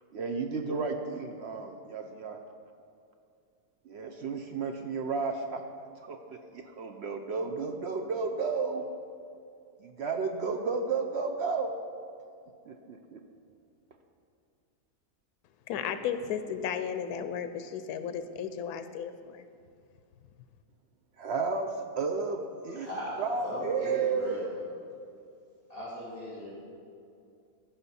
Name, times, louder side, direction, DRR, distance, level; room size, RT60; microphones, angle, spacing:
voice 1, 0.1-2.4 3.9-5.6 6.0-8.8 9.8-11.7 12.7-13.2 21.2-22.9 23.2-24.3, right 4 dB, 65° right, 4 dB, 0.7 m, -32 dB
voice 2, 15.7-19.5, left 8 dB, 90° left, 10 dB, 1.1 m, -34 dB
voice 3, 22.5-24.6 25.7-26.5, left 1 dB, 25° left, -10 dB, 2.8 m, -38 dB
14.5 x 5.8 x 4.2 m, 2.5 s
omnidirectional pair, 1.6 m